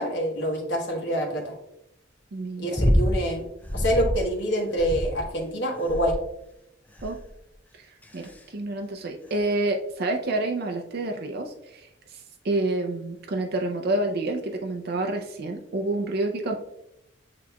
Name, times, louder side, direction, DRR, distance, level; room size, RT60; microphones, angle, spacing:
voice 1, 0.0-1.5 2.6-3.4 3.7-6.2, equal, 60° left, 1 dB, 1.1 m, -26 dB
voice 2, 2.3-2.8 7.0-7.2 7.8-7.9 8.1-16.6, right 2 dB, 55° right, 3 dB, 0.4 m, -28 dB
sound 1, 2.7-3.2 3.6-4.2 4.8-5.4 5.9-6.3 7.0-7.3 8.0-8.4 9.3-9.4, equal, 10° left, 0.4 m, -25 dB
8.2 x 2.9 x 2.2 m, 0.82 s
head